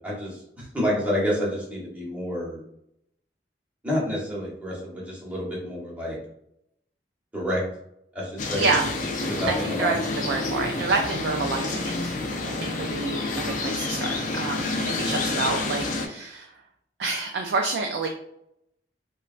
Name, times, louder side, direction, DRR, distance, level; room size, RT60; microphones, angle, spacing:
voice 1, 0.0-2.6 3.8-6.2 7.3-7.6 8.1-8.7 9.3-9.9, equal, 10° right, -6 dB, 0.9 m, -29 dB
sound 1, 8.4-16.1, left 3 dB, 45° left, 0.4 m, -29 dB
voice 2, 9.5-12.2 12.5-16.5 17.0-18.1, right 3 dB, 75° right, 2 dB, 0.3 m, -28 dB
3.0 x 2.2 x 2.4 m, 0.76 s
head